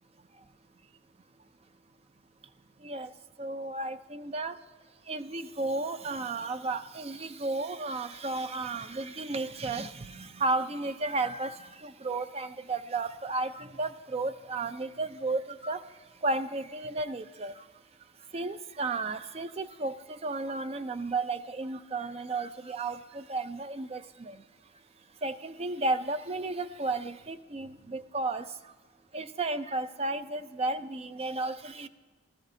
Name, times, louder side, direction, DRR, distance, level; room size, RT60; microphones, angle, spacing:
voice 1, 2.8-3.1 3.4-4.6 5.1-15.8 16.2-17.7 18.3-24.4 25.2-28.7 29.1-31.9, right 3 dB, 30° right, 10 dB, 0.4 m, -33 dB
18.0 x 13.5 x 2.7 m, 1.4 s
head